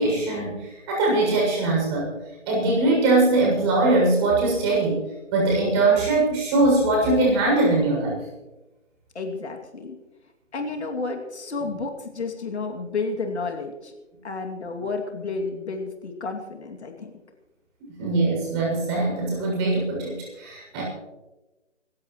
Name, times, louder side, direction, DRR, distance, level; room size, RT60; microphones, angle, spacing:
voice 1, 0.0-2.1 2.5-5.0 5.3-8.2 17.9-20.8, right 2 dB, 20° right, -2 dB, 6.8 m, -21 dB
voice 2, 9.1-10.0 10.5-13.9 14.2-17.1, left 3 dB, 60° left, 2 dB, 2.7 m, -31 dB
25.5 x 15.5 x 3.2 m, 1.1 s
figure-of-eight pair, 155°, 37 cm